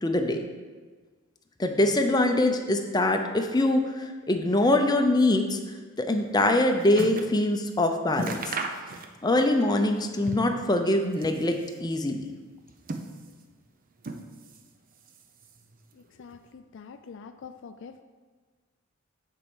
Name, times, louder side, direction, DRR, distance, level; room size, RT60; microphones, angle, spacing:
voice 1, 0.0-0.4 1.6-5.6 6.0-8.5 9.2-11.5 11.8-12.2, left 1 dB, 20° left, 4 dB, 0.6 m, -23 dB
sound 1, 6.2-7.4 7.7-7.8 8.1-9.4 9.7-10.6 11.0-11.9 12.5-13.5 14.0-14.7 15.0-15.8 16.4-16.5, right 3 dB, 45° right, 0.6 m, -37 dB
voice 2, 16.2-18.0, left 5 dB, 60° left, 8 dB, 0.4 m, -45 dB
7.2 x 4.6 x 7.0 m, 1.4 s
head